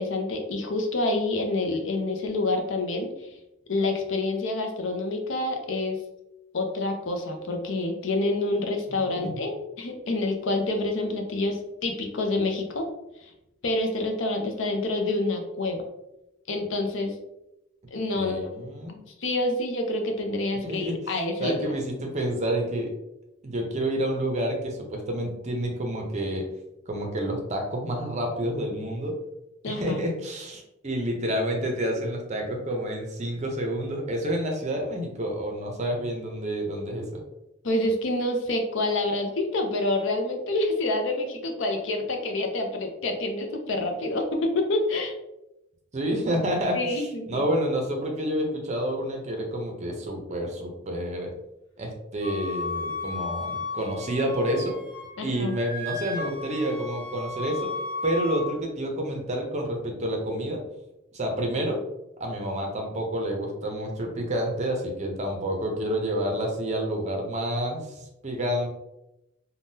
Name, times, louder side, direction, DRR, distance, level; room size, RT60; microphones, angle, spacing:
voice 1, 0.0-3.1 3.7-6.0 6.5-12.9 13.2-13.3 13.6-15.8 16.5-17.1 17.9-18.5 19.2-21.6 29.6-30.1 37.6-45.1 46.7-47.4 55.2-55.6, left 2 dB, 65° left, 3 dB, 0.5 m, -27 dB
voice 2, 18.1-19.0 20.6-21.0 21.4-22.9 23.4-26.5 26.9-29.1 29.7-37.2 45.9-51.3 51.8-54.8 55.2-57.7 58.0-60.6 61.1-61.8 62.2-68.7, right 1 dB, 35° right, 2 dB, 0.6 m, -29 dB
Wind instrument woodwind instrument, 52.2-55.1 55.4-58.5, left 3 dB, 25° left, 1.1 m, -34 dB
3.5 x 2.2 x 2.6 m, 0.89 s
head